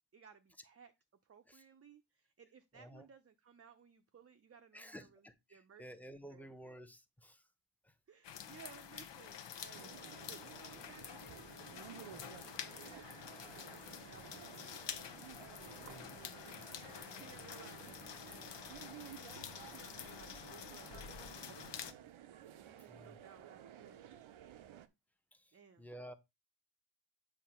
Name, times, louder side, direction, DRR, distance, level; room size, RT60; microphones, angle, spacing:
voice 1, 0.1-0.9 1.2-6.0 6.3-6.7 8.1-15.0 15.6-16.5 17.2-21.8 22.6-24.3 25.5-25.9, right 7 dB, 30° right, 0.6 m, -61 dB
voice 2, 2.7-3.1 4.7-7.4 7.8-7.9 12.1-12.4 15.8-16.2 22.9-23.2 25.3-26.1, equal, 5° left, 0.8 m, -53 dB
sound 1, 8.2-21.9, left 8 dB, 65° left, 0.8 m, -49 dB
sound 2, 9.7-24.9, right 11 dB, 85° right, 0.7 m, -54 dB
7.6 x 2.7 x 5.6 m
wide cardioid pair, 90°, 47 cm